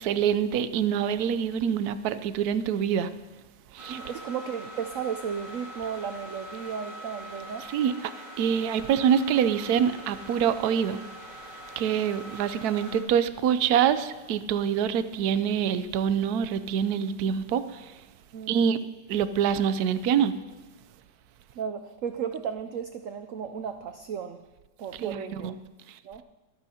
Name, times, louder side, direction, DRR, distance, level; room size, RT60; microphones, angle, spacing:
voice 1, 0.0-3.1 3.7-4.0 7.7-7.9 8.4-11.0 11.8-17.9 18.5-18.8 19.1-20.4 25.0-25.6, right 8 dB, 70° right, 12 dB, 1.0 m, -25 dB
sound 1, 3.8-13.0, equal, 35° right, 3.0 m, -43 dB
voice 2, 3.9-7.7 18.3-18.7 21.6-24.4 24.8-25.6 26.0-26.2, right 7 dB, 85° right, 8 dB, 0.7 m, -34 dB
24.5 x 9.0 x 2.8 m, 1.2 s
omnidirectional pair, 2.0 m